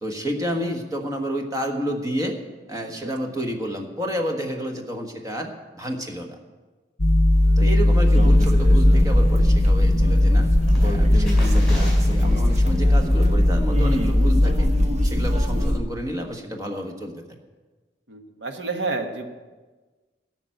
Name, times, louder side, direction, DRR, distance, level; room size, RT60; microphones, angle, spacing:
voice 1, 0.0-2.4 2.7-6.3 7.6-10.5 10.8-11.8 12.1-14.7 15.0-17.1, equal, 20° right, 3 dB, 1.4 m, -30 dB
sound 1, 7.0-14.9, left 1 dB, 40° left, 0.9 m, -19 dB
sound 2, 7.3-13.3, left 1 dB, 5° left, 4.8 m, -41 dB
voice 2, 7.3-7.7 18.1-19.3, right 3 dB, 75° right, 4 dB, 1.4 m, -30 dB
sound 3, 8.1-15.8, equal, 40° right, 1.1 m, -22 dB
13.0 x 5.9 x 9.1 m, 1.3 s
head